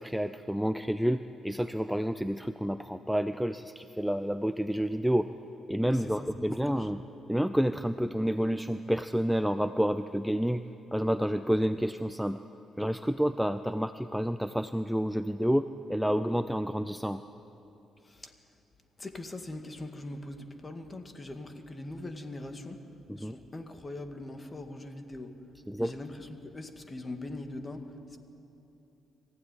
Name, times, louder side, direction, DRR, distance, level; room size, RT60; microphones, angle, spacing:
voice 1, 0.0-5.3 5.7-7.0 7.3-10.6 10.9-12.4 12.8-17.2 23.1-23.3 25.7-25.9, equal, ahead, 11 dB, 0.5 m, -29 dB
voice 2, 5.9-6.9 18.0-18.3 19.0-22.9 23.2-25.3 25.8-28.2, left 2 dB, 25° left, 6 dB, 2.1 m, -42 dB
23.5 x 15.5 x 9.8 m, 2.9 s
cardioid pair, 90°, 0 cm